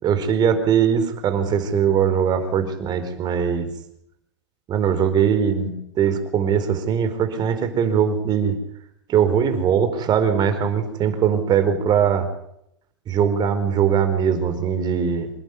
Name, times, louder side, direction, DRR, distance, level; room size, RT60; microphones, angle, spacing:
voice 1, 0.0-3.7 4.7-8.6 9.1-12.3 13.1-15.3, right 7 dB, 30° right, 9 dB, 4.7 m, -21 dB
27.5 x 11.5 x 9.9 m, 0.74 s
hypercardioid pair, 130°, 15 cm